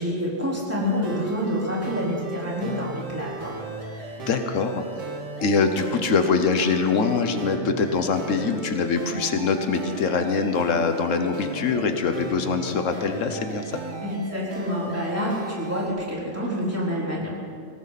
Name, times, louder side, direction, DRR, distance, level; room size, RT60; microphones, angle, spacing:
voice 1, 0.0-3.5 3.8-4.2 14.0-17.3, equal, 10° right, -6 dB, 4.0 m, -28 dB
sound 1, 0.8-15.9, right 2 dB, 85° right, 2.3 m, -36 dB
voice 2, 4.3-4.8 5.4-13.6, left 5 dB, 85° left, 7 dB, 1.4 m, -23 dB
19.0 x 18.5 x 4.2 m, 2.2 s
omnidirectional pair, 1.3 m